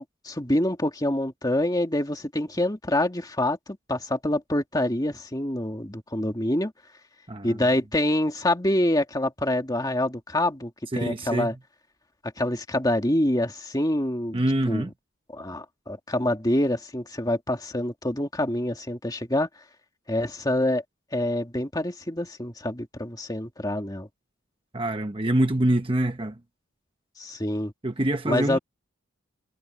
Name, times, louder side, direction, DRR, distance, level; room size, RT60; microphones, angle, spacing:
voice 1, 0.0-6.7 7.4-11.6 12.4-14.4 14.7-14.9 15.3-19.5 20.1-20.8 21.1-24.1 27.2-27.7 28.3-28.6, left 1 dB, 20° left, 2.2 m, -26 dB
voice 2, 7.3-7.6 10.9-11.5 14.3-14.9 24.7-26.4 27.8-28.6, right 1 dB, 25° right, 1.0 m, -25 dB
head